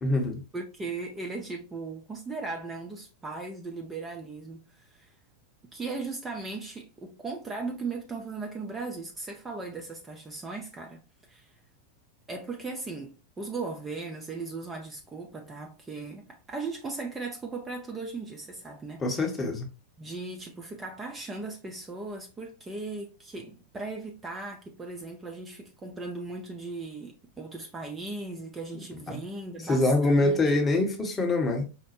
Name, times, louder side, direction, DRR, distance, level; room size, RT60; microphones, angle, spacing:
voice 1, 0.0-0.4 19.0-19.7 29.1-29.2 29.7-31.6, left 2 dB, 20° left, 0.8 m, -24 dB
voice 2, 0.5-5.1 5.7-11.0 11.3-11.5 12.3-19.0 20.0-30.6, right 3 dB, 15° right, 0.5 m, -37 dB
5.0 x 2.1 x 2.8 m
figure-of-eight pair, 90°, 0 cm